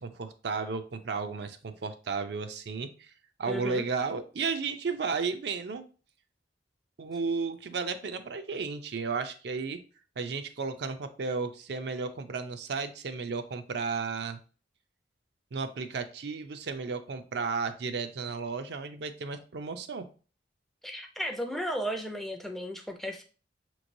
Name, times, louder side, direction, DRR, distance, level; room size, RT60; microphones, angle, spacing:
voice 1, 0.0-3.1 3.4-5.8 7.0-9.8 10.2-14.4 15.5-20.1, right 4 dB, 65° right, 8 dB, 0.5 m, -33 dB
voice 2, 3.5-3.8 20.8-23.2, equal, ahead, 4 dB, 0.4 m, -34 dB
5.8 x 3.1 x 2.6 m, 0.37 s
head